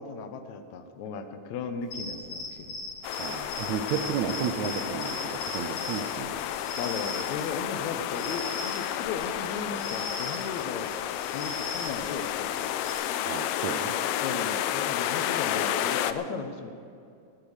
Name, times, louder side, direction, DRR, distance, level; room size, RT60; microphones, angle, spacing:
voice 1, 0.0-2.7 6.8-10.9 11.3-12.5 14.2-16.7, left 5 dB, 70° left, 8 dB, 2.0 m, -36 dB
sound 1, 1.8-12.9, left 2 dB, 55° left, 4.2 m, -40 dB
sound 2, 3.0-16.1, left 11 dB, 85° left, 2.3 m, -31 dB
voice 2, 3.2-6.3 13.3-14.0, right 8 dB, 75° right, 5 dB, 1.8 m, -32 dB
17.5 x 8.8 x 6.5 m, 2.4 s
omnidirectional pair, 3.8 m